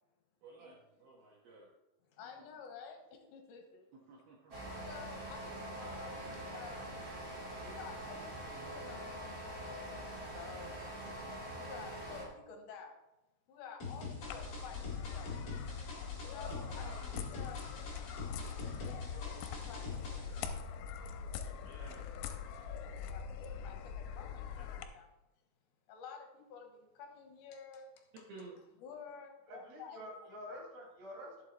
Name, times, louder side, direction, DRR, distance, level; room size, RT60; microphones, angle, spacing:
voice 1, 0.4-1.7 2.2-2.4 3.9-4.8 16.2-17.1 21.6-22.0 28.3-28.6, right 3 dB, 70° right, -3 dB, 2.5 m, -54 dB
voice 2, 2.1-3.9 4.8-6.9 7.6-11.0 11.6-13.0 13.5-15.4 16.3-16.9 17.1-17.6 18.8-21.6 22.8-25.1 25.9-28.1 28.8-30.1, left 6 dB, 75° left, 3 dB, 3.2 m, -52 dB
sound 1, 4.5-12.2, right 1 dB, 25° right, 2.6 m, -44 dB
voice 3, 5.6-6.0 29.5-31.4, equal, 50° right, -4 dB, 4.7 m, -48 dB
sound 2, 13.8-20.5, left 4 dB, 40° left, 2.4 m, -44 dB
sound 3, 14.2-24.8, left 6 dB, 90° left, 3.2 m, -43 dB
11.0 x 7.5 x 4.0 m, 0.95 s
omnidirectional pair, 5.6 m